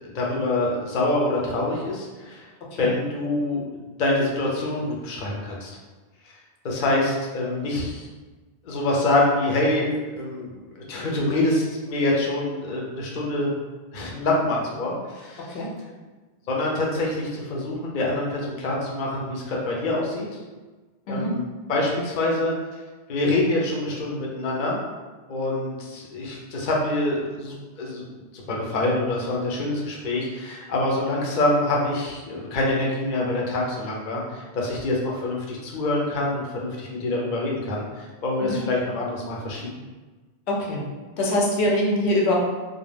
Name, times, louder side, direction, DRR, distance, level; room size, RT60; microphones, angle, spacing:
voice 1, 0.0-2.4 2.8-5.8 6.6-8.1 8.6-13.5 13.9-15.5 16.5-20.3 21.1-21.4 21.7-22.5 23.1-24.8 25.3-39.7, left 2 dB, 55° left, -3 dB, 0.6 m, -25 dB
voice 2, 40.5-40.8 41.2-42.3, left 1 dB, 85° left, -3 dB, 0.9 m, -23 dB
2.3 x 2.2 x 3.2 m, 1.3 s
omnidirectional pair, 1.1 m